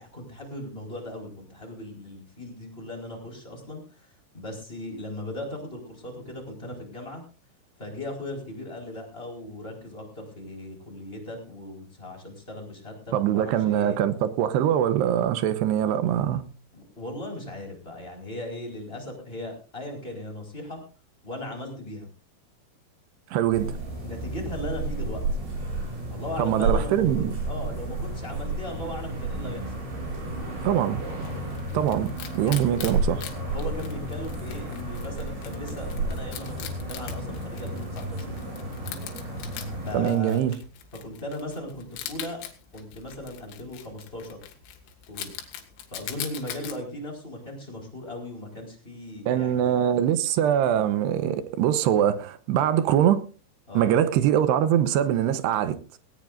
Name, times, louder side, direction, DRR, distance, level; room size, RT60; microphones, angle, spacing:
voice 1, 0.0-7.2 7.8-14.0 16.7-20.8 21.2-22.1 24.0-25.2 26.1-29.8 32.4-32.9 33.5-38.3 39.9-40.4 40.9-42.4 42.7-44.4 45.1-45.3 45.9-49.7 53.7-53.9, left 1 dB, 10° left, 4.4 m, -38 dB
voice 2, 13.1-16.4 23.3-23.7 26.4-27.3 30.6-31.0 31.7-33.2 39.9-40.6 49.3-53.2 53.7-55.8, right 10 dB, 75° right, 2.8 m, -23 dB
sound 1, 23.5-40.0, right 2 dB, 55° right, 8.5 m, -32 dB
Wild animals, 30.8-46.8, left 10 dB, 85° left, 4.3 m, -42 dB
18.5 x 18.5 x 2.6 m
omnidirectional pair, 5.5 m